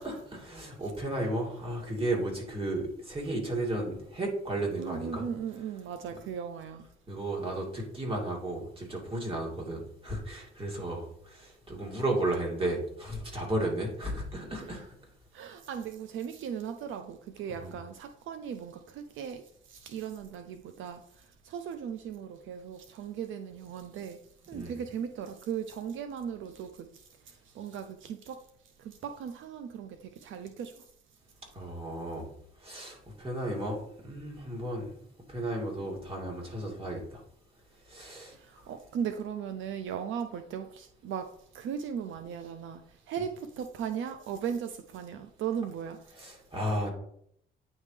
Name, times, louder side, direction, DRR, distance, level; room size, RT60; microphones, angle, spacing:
voice 1, 0.0-5.3 7.1-14.9 17.5-17.7 24.5-24.8 31.5-32.2 32.6-34.9 35.3-37.2 37.9-38.3 46.1-46.9, right 1 dB, 25° right, 2.4 m, -34 dB
voice 2, 4.8-6.9 15.3-24.2 24.5-28.4 28.8-30.9 38.3-46.0, right 8 dB, 75° right, 0.5 m, -38 dB
9.2 x 3.6 x 3.2 m
cardioid pair, 90°, 20 cm